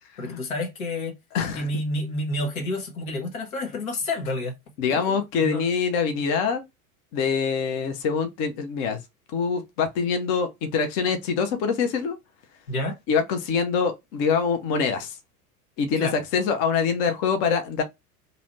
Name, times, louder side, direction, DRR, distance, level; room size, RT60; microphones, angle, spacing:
voice 1, 0.2-1.1 1.5-4.5 4.9-5.6 12.7-13.0 16.0-16.2, left 1 dB, 65° left, 1.3 m, -29 dB
voice 2, 1.3-1.7 4.8-6.6 7.1-9.0 9.3-12.2 13.1-15.2 15.8-17.8, left 6 dB, 40° left, 0.9 m, -24 dB
3.0 x 2.7 x 3.0 m
figure-of-eight pair, 85°, 45 cm